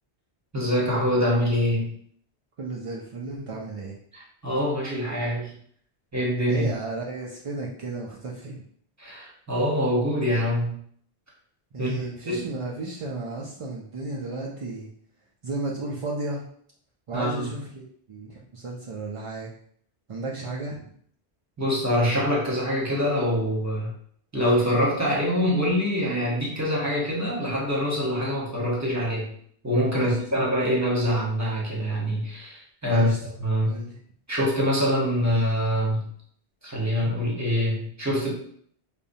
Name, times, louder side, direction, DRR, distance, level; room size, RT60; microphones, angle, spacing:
voice 1, 0.5-1.9 4.1-5.5 6.1-6.7 9.0-10.8 11.8-12.0 12.2-12.4 17.1-17.5 21.6-23.9 24.3-29.3 29.6-33.1 33.4-33.8 34.3-36.1 36.6-38.3, equal, 15° right, -4 dB, 1.0 m, -24 dB
voice 2, 2.6-3.9 6.5-8.6 11.7-14.9 15.4-16.4 17.1-17.8 18.1-19.5 20.1-20.8 30.0-30.2 32.9-33.2 33.6-34.0, right 2 dB, 55° right, -3 dB, 0.3 m, -33 dB
5.1 x 2.2 x 2.6 m, 0.62 s
omnidirectional pair, 1.1 m